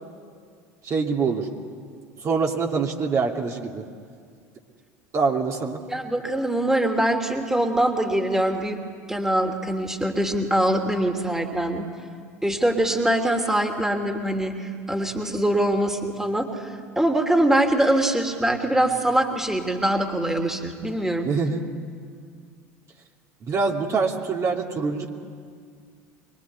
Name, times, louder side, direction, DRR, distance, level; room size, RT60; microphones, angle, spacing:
voice 1, 0.8-1.5 2.2-3.9 5.1-5.8 21.2-21.6 23.4-25.1, right 4 dB, 35° right, 0 dB, 2.7 m, -24 dB
voice 2, 5.9-8.8 9.1-11.9 12.4-21.3, right 1 dB, 5° right, 3 dB, 3.0 m, -23 dB
24.5 x 22.5 x 9.8 m, 2.1 s
figure-of-eight pair, 70°, 8 cm